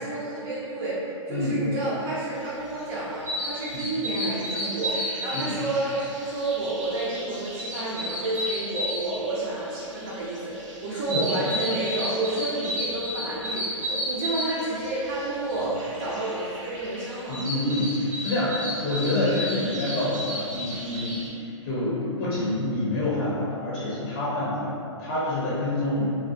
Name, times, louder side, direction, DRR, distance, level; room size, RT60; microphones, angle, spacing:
voice 1, 0.0-17.4, right 2 dB, 40° right, -9 dB, 0.5 m, -30 dB
voice 2, 1.3-1.6 3.7-3.9 5.3-5.5 10.9-11.2 17.3-26.1, left 1 dB, 40° left, -8 dB, 0.6 m, -27 dB
sound 1, 2.6-21.3, equal, 85° right, 1.1 m, -33 dB
2.3 x 2.1 x 2.6 m, 2.7 s
hypercardioid pair, 135°, 16 cm